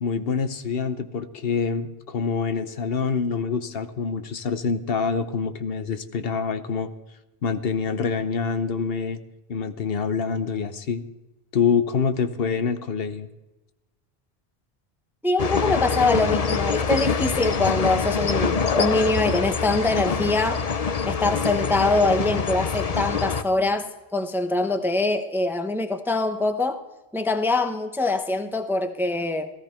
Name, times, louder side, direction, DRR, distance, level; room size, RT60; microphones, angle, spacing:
voice 1, 0.0-6.9 7.4-9.2 9.5-11.0 11.5-13.3, left 5 dB, 70° left, 11 dB, 1.0 m, -26 dB
voice 2, 15.2-20.6 21.1-26.8 27.1-29.5, left 2 dB, ahead, 8 dB, 0.7 m, -24 dB
sound 1, 15.4-23.4, left 5 dB, 40° left, 0.7 m, -25 dB
15.5 x 14.5 x 4.4 m, 1.0 s
omnidirectional pair, 1.0 m